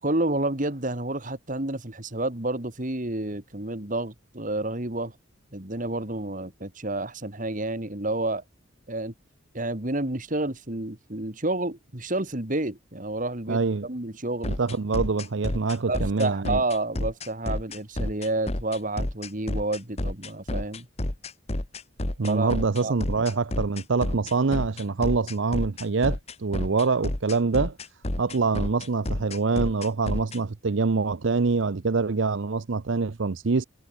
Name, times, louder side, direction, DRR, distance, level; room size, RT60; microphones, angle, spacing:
voice 1, 0.0-5.1 5.5-8.4 8.9-9.1 9.5-14.5 15.9-20.9 22.2-23.0, right 2 dB, 40° right, 2.2 m, -30 dB
voice 2, 13.5-13.9 14.5-16.6 22.2-27.8 28.2-33.6, right 4 dB, 65° right, 0.6 m, -25 dB
sound 1, 14.4-30.4, left 1 dB, 30° left, 1.2 m, -30 dB
head